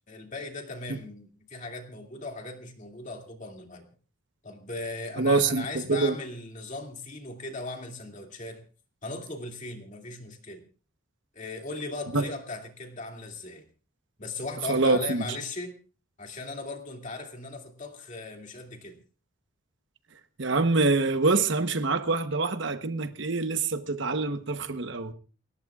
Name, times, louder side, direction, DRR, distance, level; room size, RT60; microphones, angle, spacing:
voice 1, 0.1-3.9 4.4-8.6 9.0-10.6 11.3-13.6 14.2-15.7 16.2-19.0, left 2 dB, 35° left, 2.5 m, -38 dB
voice 2, 5.2-6.1 12.1-12.2 14.7-15.3 20.4-25.1, right 3 dB, 60° right, 1.0 m, -25 dB
29.5 x 14.0 x 2.4 m
head